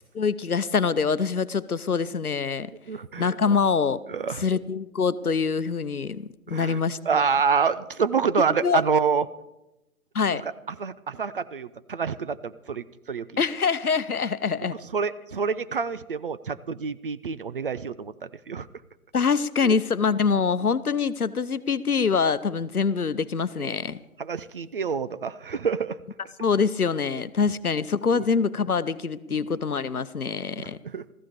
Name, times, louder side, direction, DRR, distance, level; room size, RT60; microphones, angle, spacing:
voice 1, 0.0-2.7 3.2-4.0 4.4-7.3 8.6-8.8 10.1-10.4 13.4-14.8 19.1-24.0 26.4-30.8, left 5 dB, 90° left, 16 dB, 0.8 m, -25 dB
voice 2, 2.9-3.3 4.1-4.4 6.5-6.8 7.1-9.3 10.3-10.4 10.8-13.4 14.9-18.7 19.6-19.8 23.6-23.7 24.2-26.0 28.1-28.2 29.3-29.4 30.6-31.0, right 5 dB, 40° right, 14 dB, 0.6 m, -27 dB
15.5 x 14.5 x 5.1 m, 0.94 s
figure-of-eight pair, 135°, 43 cm